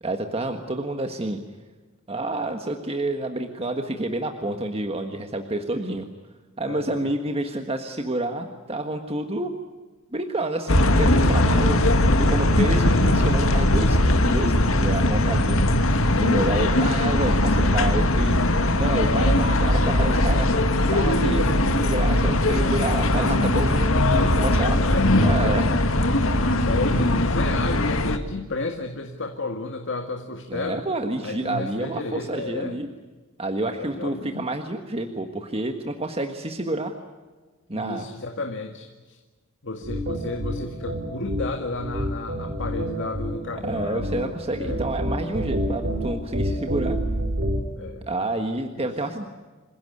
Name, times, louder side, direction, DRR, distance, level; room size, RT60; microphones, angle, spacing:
voice 1, 0.0-1.4 2.1-6.0 6.6-9.5 10.1-11.8 12.2-14.0 14.2-14.5 14.8-15.6 16.2-18.4 18.8-20.5 20.9-24.8 25.2-25.7 30.5-32.9 33.4-36.9 37.7-38.1 43.6-47.0 48.1-49.3, right 2 dB, 30° right, 5 dB, 1.5 m, -29 dB
voice 2, 6.6-7.1 11.5-11.7 22.5-22.8 24.7-25.5 25.9-26.0 26.4-30.8 31.2-32.8 33.7-34.4 37.7-39.2 39.6-44.8 47.8-48.4 48.7-48.9, left 3 dB, 60° left, 4 dB, 2.1 m, -33 dB
sound 1, 10.7-28.2, left 1 dB, 75° left, 2.0 m, -20 dB
sound 2, 39.8-47.7, equal, 55° right, 5.6 m, -28 dB
27.0 x 16.5 x 9.5 m, 1.3 s
head